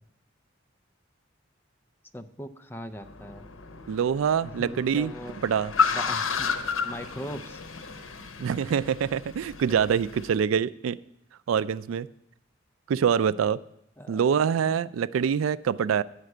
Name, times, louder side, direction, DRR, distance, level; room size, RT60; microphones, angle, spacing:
voice 1, 2.1-3.5 4.4-5.4 5.9-6.5 6.8-7.6 14.0-14.2, equal, 10° left, 9 dB, 0.4 m, -40 dB
Car, 3.0-10.3, left 5 dB, 85° left, 0.9 m, -32 dB
voice 2, 3.9-5.1 5.4-5.7 8.4-11.0 11.5-12.1 12.9-13.6 14.1-16.0, right 7 dB, 80° right, 17 dB, 0.3 m, -25 dB
9.6 x 5.8 x 7.7 m, 0.77 s
head